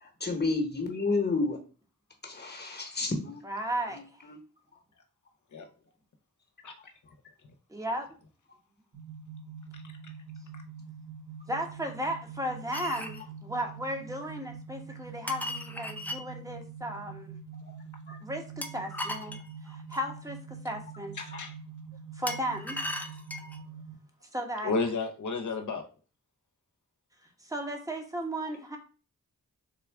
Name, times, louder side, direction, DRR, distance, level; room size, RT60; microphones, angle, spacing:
voice 1, 0.0-1.6 2.2-3.4 4.3-4.4 18.1-18.2, left 3 dB, 30° left, 3 dB, 1.1 m, -30 dB
voice 2, 3.4-4.2 7.7-8.1 11.5-17.4 18.2-19.4 19.6-21.1 22.1-22.9 24.3-24.7 27.4-28.8, equal, 10° right, 3 dB, 0.9 m, -35 dB
sound 1, 8.9-23.9, right 6 dB, 60° right, 1.9 m, -45 dB
sound 2, 12.7-13.2 15.3-16.2 18.6-20.1 22.3-23.6, left 1 dB, 5° left, 0.5 m, -37 dB
voice 3, 21.2-21.5 24.6-25.9, left 4 dB, 65° left, 4 dB, 0.7 m, -31 dB
3.8 x 2.3 x 3.4 m, 0.35 s
cardioid pair, 45°, 32 cm